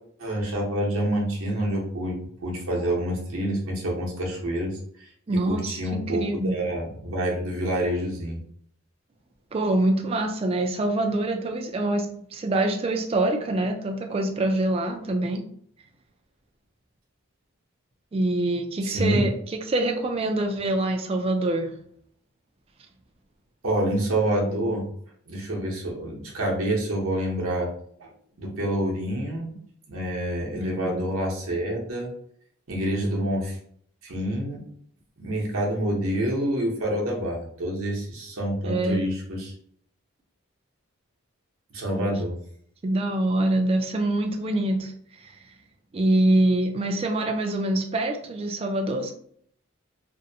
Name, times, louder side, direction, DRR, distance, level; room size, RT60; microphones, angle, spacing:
voice 1, 0.2-8.4 18.8-19.3 23.6-24.9 25.3-27.7 28.0-28.1 28.4-29.6 29.9-32.1 32.7-33.6 34.0-34.6 35.2-39.5 41.7-42.4, right 1 dB, 90° right, -2 dB, 0.8 m, -27 dB
voice 2, 5.3-6.6 9.5-15.4 18.1-21.7 30.6-31.0 32.9-33.2 38.6-39.0 41.9-42.1 42.8-44.9 45.2-45.3 45.9-49.1, right 1 dB, 30° right, 4 dB, 0.3 m, -25 dB
2.6 x 2.1 x 2.7 m, 0.63 s
head